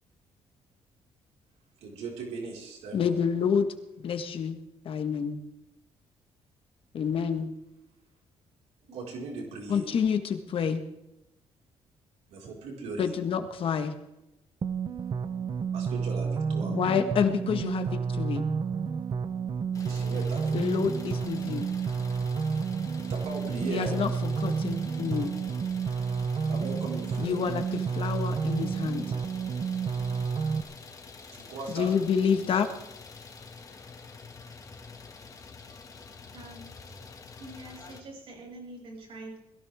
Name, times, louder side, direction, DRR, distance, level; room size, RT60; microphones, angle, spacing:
voice 1, 1.8-3.1 8.9-9.9 12.3-13.1 15.7-16.8 19.8-20.8 23.0-24.0 26.5-27.4 31.3-31.9, right 3 dB, 90° right, -2 dB, 5.0 m, -38 dB
voice 2, 2.9-3.7 4.0-4.6 4.8-5.4 6.9-7.5 9.7-10.8 13.0-13.9 16.6-18.4 20.5-21.7 23.7-25.3 27.2-29.1 31.7-32.7, left 7 dB, 55° left, 8 dB, 1.6 m, -28 dB
voice 3, 9.6-10.1 36.3-37.0 37.4-39.4, right 1 dB, 60° right, -2 dB, 7.9 m, -46 dB
sound 1, 14.6-30.6, right 6 dB, 40° right, 0.9 m, -30 dB
Idling, 19.7-38.0, left 4 dB, 30° left, 2.1 m, -48 dB
21.5 x 16.0 x 3.6 m, 0.92 s
cardioid pair, 120°, 11 cm